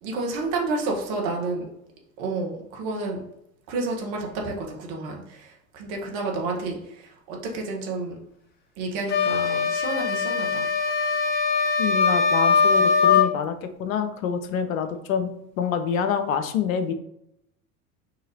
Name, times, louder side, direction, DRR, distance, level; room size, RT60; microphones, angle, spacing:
voice 1, 0.0-1.7 2.2-3.2 3.7-8.2 8.8-10.7, right 3 dB, 50° right, 0 dB, 1.2 m, -30 dB
sound 1, 9.1-13.3, left 5 dB, 25° left, 0.5 m, -21 dB
voice 2, 11.8-13.5 13.8-15.3 15.6-16.9, left 7 dB, 65° left, 8 dB, 0.6 m, -26 dB
5.5 x 2.8 x 2.7 m, 0.78 s
figure-of-eight pair, 75°, 43 cm